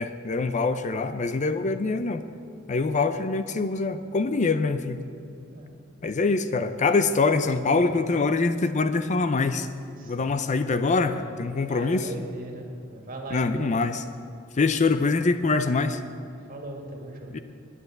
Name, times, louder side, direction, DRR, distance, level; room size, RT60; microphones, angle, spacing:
voice 1, 0.0-2.2 2.7-5.0 6.0-9.7 10.1-12.1 13.3-14.0 14.6-16.0 17.3-17.4, left 3 dB, 35° left, 10 dB, 0.5 m, -24 dB
voice 2, 10.0-10.4 10.8-13.8 16.5-17.4, right 2 dB, 45° right, 1 dB, 2.2 m, -39 dB
11.0 x 9.9 x 7.8 m, 2.6 s
head